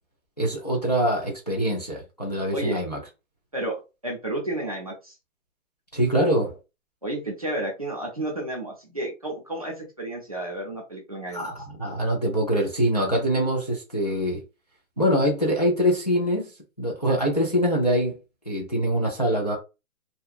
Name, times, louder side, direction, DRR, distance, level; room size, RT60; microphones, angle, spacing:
voice 1, 0.4-3.0 5.9-6.6 11.3-14.4 15.0-16.5 16.8-18.2 18.5-19.6, equal, 35° left, 0.4 m, -24 dB
voice 2, 4.0-5.1 7.0-11.5, right 1 dB, 30° right, 0.5 m, -31 dB
2.7 x 2.2 x 2.3 m
hypercardioid pair, 175°, 39 cm